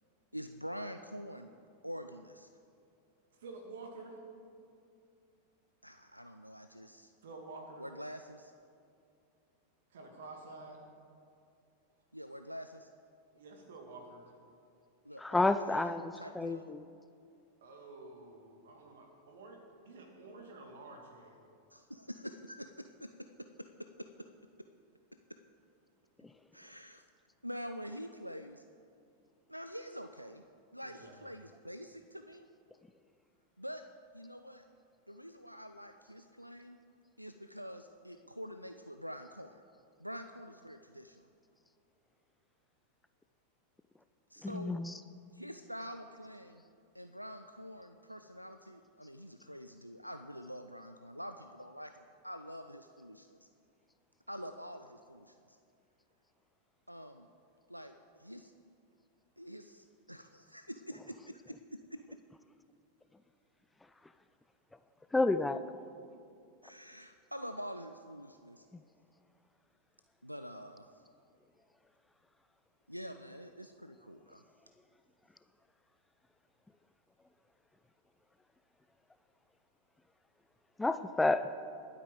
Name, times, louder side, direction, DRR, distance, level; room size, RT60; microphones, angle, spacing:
voice 1, 0.3-1.5 1.8-2.5 5.8-7.1 7.8-8.5 12.1-12.9 15.0-16.7 21.7-23.1 23.4-24.1 26.5-27.0 27.4-28.6 29.5-30.4 30.7-32.5 33.6-33.8 34.1-34.7 35.1-36.8 37.2-39.6 40.0-41.3 44.3-44.8 45.3-46.6 46.9-53.5 54.3-55.6 56.9-57.3 57.7-58.5 59.4-62.0 66.6-68.7 70.2-71.0 72.9-74.4, equal, 90° right, 8 dB, 0.4 m, -46 dB
voice 2, 3.4-4.2 7.2-7.9 9.9-10.8 13.3-14.3 17.6-21.4 30.8-31.2, right 3 dB, 60° right, 3 dB, 2.0 m, -50 dB
voice 3, 15.2-16.8 26.2-26.3 44.4-44.9 65.1-65.6 68.7-68.8 80.8-81.5, left 2 dB, 10° left, 11 dB, 0.4 m, -30 dB
21.5 x 8.4 x 3.8 m, 2.4 s
figure-of-eight pair, 90°, 0 cm